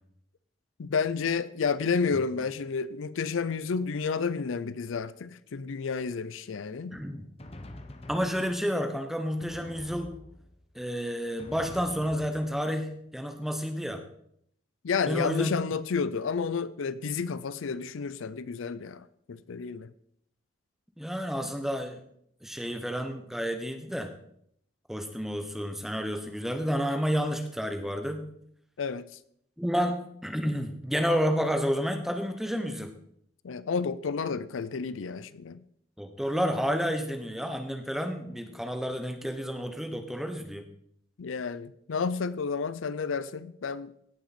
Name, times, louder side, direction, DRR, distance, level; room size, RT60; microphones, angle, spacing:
voice 1, 0.8-7.0 14.8-19.9 28.8-29.1 33.4-35.6 41.2-43.9, left 5 dB, 80° left, 0.5 m, -31 dB
Drum, 6.9-8.8 9.4-10.7 11.4-12.9, left 1 dB, 30° left, 0.8 m, -46 dB
voice 2, 6.9-7.3 8.1-10.1 10.7-14.0 15.1-15.5 21.0-22.0 22.4-24.1 24.9-28.3 29.6-32.9 36.0-40.7, equal, ahead, 0.9 m, -30 dB
17.0 x 5.9 x 4.3 m
head